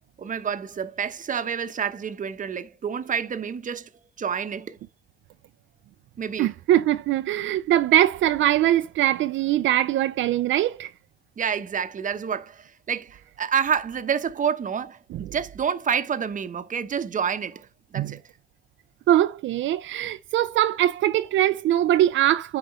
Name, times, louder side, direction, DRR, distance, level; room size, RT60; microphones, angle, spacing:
voice 1, 0.2-3.9 4.2-4.8 6.2-6.5 11.4-17.7 17.9-18.2, right 7 dB, 40° right, 0.9 m, -28 dB
voice 2, 6.4-10.9 18.0-18.1 19.1-22.6, right 12 dB, 75° right, 0.5 m, -22 dB
10.0 x 4.9 x 3.1 m
cardioid pair, 90°, 20 cm